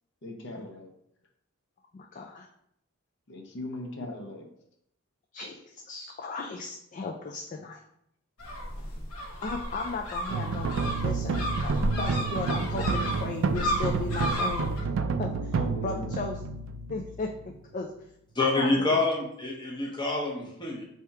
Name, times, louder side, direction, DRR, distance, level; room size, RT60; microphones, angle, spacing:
voice 1, 0.2-0.9 3.3-4.4 15.5-16.0, left 1 dB, 55° left, 2 dB, 0.7 m, -39 dB
voice 2, 1.9-2.5 4.0-4.2 5.3-7.8 9.4-10.7 11.0-14.7 15.2-15.4 15.8-16.5 16.9-17.3 17.7-17.9 18.5-18.9, left 3 dB, 35° left, 1 dB, 0.3 m, -36 dB
sound 1, 8.4-14.8, equal, 85° left, 1.1 m, -33 dB
sound 2, 10.3-17.6, right 4 dB, 60° right, 0.3 m, -30 dB
voice 3, 18.3-20.8, left 3 dB, 20° left, -1 dB, 0.8 m, -27 dB
3.4 x 2.8 x 4.6 m, 0.75 s
head